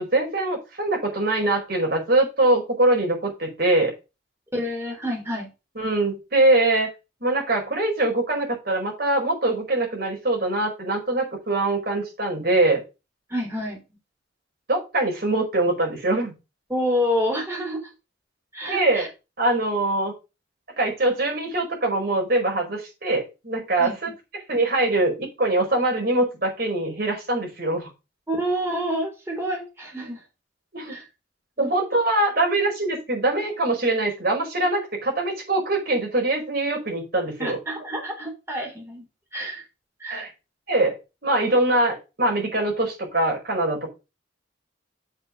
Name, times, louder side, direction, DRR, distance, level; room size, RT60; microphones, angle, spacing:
voice 1, 0.0-3.9 5.7-6.9 7.2-12.8 14.7-16.3 18.7-19.1 19.4-20.1 20.8-24.1 24.5-27.9 30.7-30.9 31.6-37.6 40.1-40.3 40.7-40.9 41.2-43.9, right 2 dB, 50° right, 1 dB, 5.1 m, -23 dB
voice 2, 4.5-5.5 13.3-13.8 16.7-17.8 18.5-19.1 23.8-23.9 28.3-30.2 30.9-31.0 31.6-31.7 37.4-39.1 39.3-39.6 40.0-40.3, equal, 15° right, 0 dB, 4.3 m, -28 dB
7.3 x 6.2 x 5.6 m, 0.28 s
head